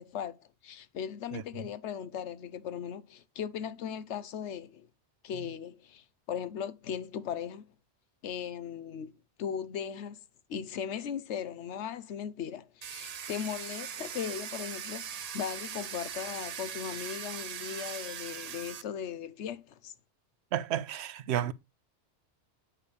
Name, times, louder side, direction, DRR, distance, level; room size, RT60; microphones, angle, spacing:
voice 1, 0.0-4.9 5.2-7.7 8.2-10.2 10.5-19.9, left 8 dB, 85° left, 1.0 m, -38 dB
Domestic sounds home sounds, 12.8-18.8, right 8 dB, 50° right, 0.5 m, -40 dB
voice 2, 20.5-21.5, right 11 dB, 75° right, 0.8 m, -31 dB
8.9 x 3.3 x 6.7 m
omnidirectional pair, 1.2 m